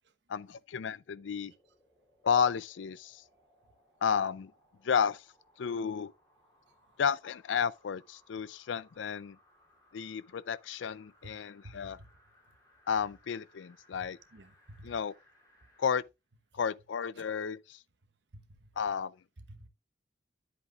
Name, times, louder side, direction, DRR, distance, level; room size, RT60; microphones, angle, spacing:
voice 1, 0.3-1.5 2.2-3.2 4.0-4.5 4.8-5.2 5.6-6.1 7.0-9.4 9.9-12.0 12.9-14.2 14.8-15.1 15.8-16.0 16.5-17.8 18.8-19.2, left 7 dB, 85° left, 0.4 m, -32 dB
sound 1, 1.0-16.0 16.4-16.5, left 1 dB, 15° left, 3.3 m, -67 dB
voice 2, 11.6-12.1 14.3-14.9 18.3-18.7 19.5-19.7, right 1 dB, 75° right, 1.1 m, -51 dB
10.0 x 8.0 x 2.4 m
head